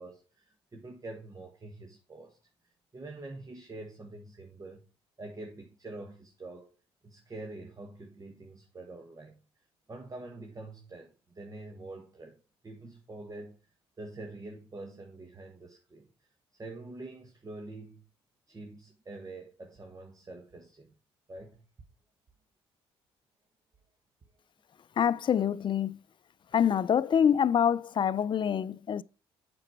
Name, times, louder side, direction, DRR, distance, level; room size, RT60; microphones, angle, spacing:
voice 1, 0.0-2.4 2.9-4.9 5.2-6.7 7.0-9.4 9.9-12.4 12.6-13.6 14.0-16.1 16.6-18.0 18.5-20.9 21.3-21.6, right 2 dB, 30° right, 1.4 m, -45 dB
voice 2, 25.0-26.0 26.5-29.0, left 8 dB, 45° left, 0.5 m, -26 dB
7.7 x 6.1 x 4.7 m
supercardioid pair, 65°, 12 cm